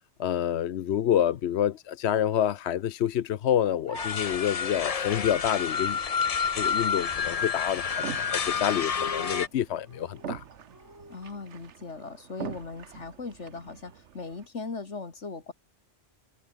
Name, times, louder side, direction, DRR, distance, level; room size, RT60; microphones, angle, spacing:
voice 1, 0.2-6.0 6.6-10.4, left 10 dB, 70° left, 0.9 m, -28 dB
sound 1, 3.9-9.5, left 6 dB, 40° left, 0.7 m, -29 dB
sound 2, 3.9-11.8, equal, 15° right, 6.0 m, -52 dB
sound 3, 7.9-14.5, right 8 dB, 80° right, 1.3 m, -44 dB
voice 2, 11.1-15.5, left 4 dB, 90° left, 2.8 m, -39 dB
omnidirectional pair, 1.2 m